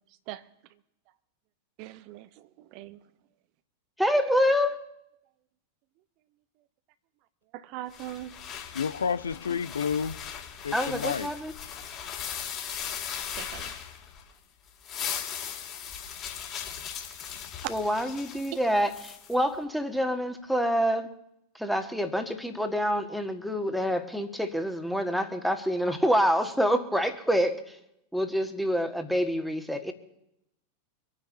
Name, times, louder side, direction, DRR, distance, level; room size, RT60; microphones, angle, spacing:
voice 1, 1.8-3.0 7.5-8.3 13.3-13.8, right 14 dB, 45° right, 0.9 m, -41 dB
voice 2, 4.0-4.8 10.7-11.5 17.7-21.1 21.6-27.7 28.1-29.9, equal, ahead, 1.7 m, -27 dB
sound 1, 7.9-14.3 14.7-19.3, left 8 dB, 35° left, 3.6 m, -38 dB
voice 3, 8.7-10.2 10.6-11.3, left 6 dB, 70° left, 0.5 m, -30 dB
25.5 x 9.6 x 3.9 m
figure-of-eight pair, 90°, 0 cm